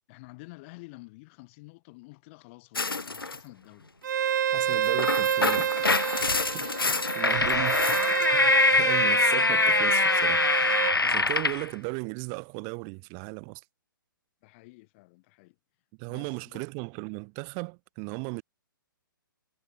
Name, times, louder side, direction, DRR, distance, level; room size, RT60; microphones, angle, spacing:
voice 1, 0.1-3.9 4.6-4.9 5.6-5.9 14.4-15.5 16.1-16.6, left 25 dB, 35° left, 5.9 m, -49 dB
sound 1, 2.7-3.4 4.7-11.7, left 3 dB, 90° left, 0.7 m, -24 dB
Bowed string instrument, 4.0-11.0, right 9 dB, 55° right, 1.4 m, -28 dB
voice 2, 4.5-5.7 6.5-10.4 11.0-13.6 16.0-18.4, right 40 dB or more, 30° right, 5.8 m, -36 dB
figure-of-eight pair, 130°, 12 cm